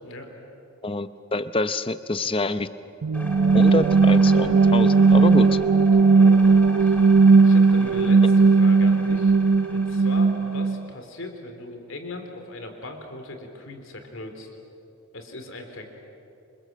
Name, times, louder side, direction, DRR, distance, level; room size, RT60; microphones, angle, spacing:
voice 1, 0.0-0.4 6.0-7.1 7.4-9.4 9.7-14.5 15.1-15.9, left 2 dB, 60° left, 5 dB, 3.5 m, -39 dB
voice 2, 0.8-2.7 3.5-5.6, left 2 dB, 25° left, 12 dB, 0.7 m, -26 dB
sound 1, 3.0-10.8, right 4 dB, 75° right, 0.6 m, -17 dB
sound 2, 3.1-10.7, left 1 dB, 5° left, 2.4 m, -39 dB
28.0 x 26.5 x 7.6 m, 2.9 s
head